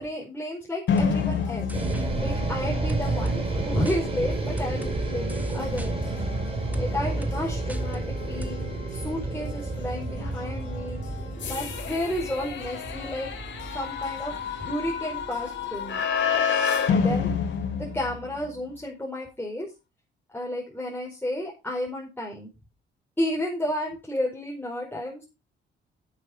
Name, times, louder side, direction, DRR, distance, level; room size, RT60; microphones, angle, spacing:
voice 1, 0.0-1.7 2.2-5.9 6.8-8.6 8.9-11.0 11.4-13.3 13.6-16.0 16.9-17.3 17.7-19.7 20.3-22.5 23.2-25.2, left 1 dB, 10° left, -3 dB, 4.8 m, -32 dB
sound 1, 0.9-18.6, left 6 dB, 70° left, 3.5 m, -31 dB
sound 2, 1.0-1.1 1.7-2.1 2.9-3.4 3.9-4.0 4.6-5.0 5.3-5.9 6.7-6.9 7.2-7.4 7.7-8.1 8.4-8.5, equal, 10° right, 1.8 m, -37 dB
sound 3, 1.7-16.0, right 2 dB, 30° right, 4.7 m, -31 dB
11.0 x 8.2 x 5.1 m, 0.28 s
cardioid pair, 90°, 20 cm